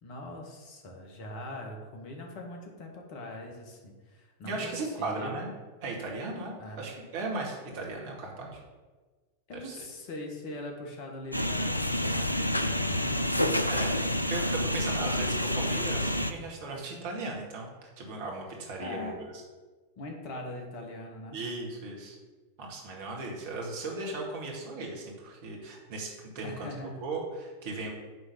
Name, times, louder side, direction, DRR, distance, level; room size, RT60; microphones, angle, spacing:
voice 1, 0.0-5.4 6.6-6.9 9.5-13.8 14.3-14.5 18.8-19.2 20.0-21.4 26.4-27.0, left 1 dB, 45° left, 2 dB, 1.8 m, -42 dB
voice 2, 4.4-5.5 5.8-8.6 9.5-9.9 13.7-19.3 21.3-22.2 22.6-27.9, right 3 dB, 50° right, -1 dB, 2.2 m, -37 dB
sound 1, 11.3-16.3, left 1 dB, 85° left, 0.4 m, -28 dB
9.5 x 3.9 x 6.8 m, 1.3 s
figure-of-eight pair, 90°, 0 cm